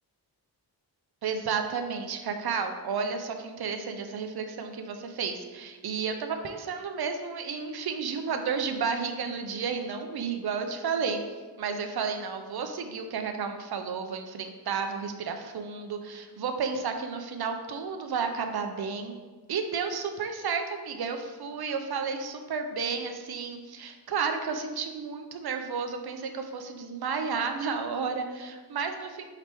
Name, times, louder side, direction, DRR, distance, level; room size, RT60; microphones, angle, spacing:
voice 1, 1.2-11.2 11.6-19.1 19.5-29.3, right 5 dB, 65° right, 6 dB, 0.5 m, -32 dB
4.4 x 2.9 x 3.3 m, 1.4 s
wide cardioid pair, 80°, 42 cm